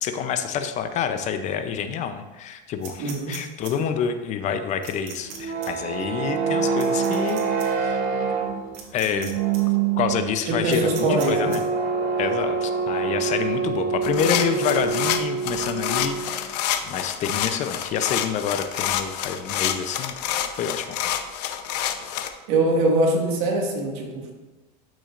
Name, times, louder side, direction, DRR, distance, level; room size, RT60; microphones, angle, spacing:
voice 1, 0.0-8.0 8.9-9.4 10.0-11.6 12.2-16.6 16.8-20.1 20.5-21.0, left 7 dB, 35° left, 9 dB, 0.6 m, -27 dB
sound 1, 2.8-3.7 4.8-5.4 5.6-5.7 6.8-7.7 8.7-9.3 9.5-9.6 10.7-11.6, right 7 dB, 85° right, 1.8 m, -39 dB
voice 2, 3.0-3.5 10.5-11.5 22.5-24.3, right 2 dB, 65° right, 0 dB, 1.9 m, -23 dB
sound 2, 5.2-16.5, right 5 dB, 45° right, 0.8 m, -26 dB
sound 3, 14.0-22.3, left 11 dB, 85° left, 0.8 m, -28 dB
12.5 x 6.2 x 2.5 m, 1.1 s
supercardioid pair, 145°, 20 cm